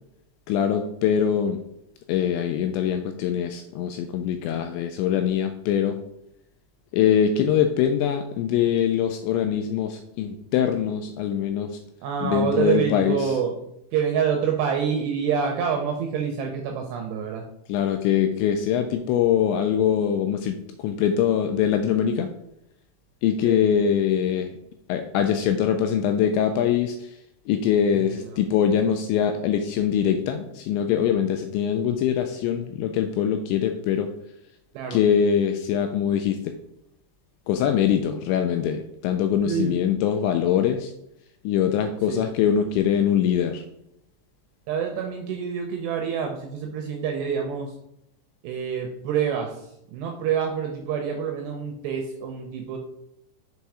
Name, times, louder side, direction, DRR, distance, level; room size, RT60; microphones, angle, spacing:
voice 1, 0.5-1.6 2.1-6.0 6.9-11.8 12.2-13.4 17.7-22.3 23.2-24.5 24.9-27.2 27.5-34.1 34.9-36.5 37.5-40.9 41.4-43.7, left 8 dB, 85° left, 6 dB, 2.6 m, -23 dB
voice 2, 12.0-13.5 13.9-17.5 23.4-23.6 28.0-28.2 34.7-35.0 39.5-39.8 42.1-42.2 44.7-47.7 48.4-49.6 49.9-52.8, right 7 dB, 80° right, 3 dB, 2.5 m, -27 dB
6.8 x 4.1 x 4.7 m, 0.80 s
omnidirectional pair, 5.6 m